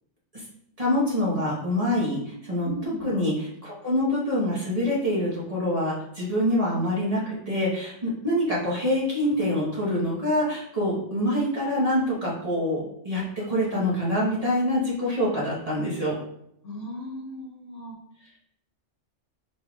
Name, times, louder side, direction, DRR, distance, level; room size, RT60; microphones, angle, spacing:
voice 1, 0.8-2.7 3.0-13.2 13.5-16.2, left 1 dB, 30° right, -7 dB, 1.2 m, -25 dB
voice 2, 2.6-3.1 16.6-18.0, left 1 dB, 70° left, -4 dB, 1.7 m, -37 dB
5.0 x 4.1 x 2.4 m, 0.75 s
omnidirectional pair, 1.3 m